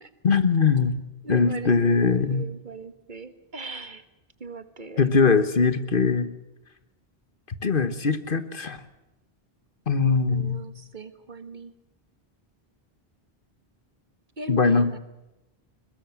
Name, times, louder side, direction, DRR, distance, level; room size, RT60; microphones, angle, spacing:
voice 1, 0.2-0.9 1.3-2.5 5.0-6.3 7.5-8.8 9.9-10.6 14.5-14.9, left 5 dB, 55° left, 12 dB, 1.4 m, -21 dB
voice 2, 1.2-4.0 4.4-5.1 10.3-11.7 14.4-15.0, right 3 dB, 50° right, 11 dB, 1.6 m, -38 dB
21.5 x 21.0 x 7.3 m, 0.94 s
omnidirectional pair, 1.1 m